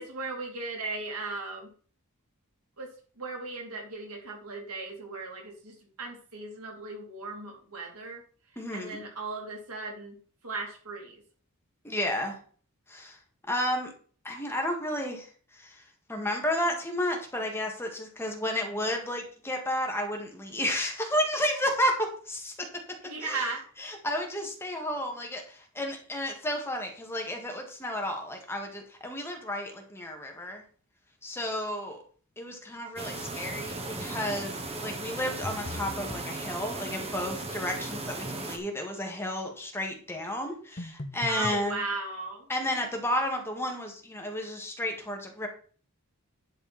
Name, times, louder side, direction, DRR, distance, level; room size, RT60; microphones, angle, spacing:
voice 1, 0.0-1.7 2.8-2.9 3.2-8.2 8.7-10.1 10.4-11.2 23.0-23.6 41.3-42.8, right 3 dB, 90° right, 0 dB, 3.5 m, -37 dB
voice 2, 8.6-9.0 11.8-12.4 12.9-13.2 13.5-13.9 14.2-15.3 15.5-15.8 16.1-22.5 23.2-23.5 23.8-30.6 31.2-32.0 32.4-41.8 42.5-45.5, left 1 dB, 10° left, 2 dB, 2.0 m, -32 dB
sound 1, 33.0-38.6, right 2 dB, 30° right, 1.4 m, -37 dB
sound 2, 35.4-36.3 40.8-41.6, left 1 dB, 35° left, 0.8 m, -39 dB
10.5 x 6.5 x 4.3 m, 0.43 s
head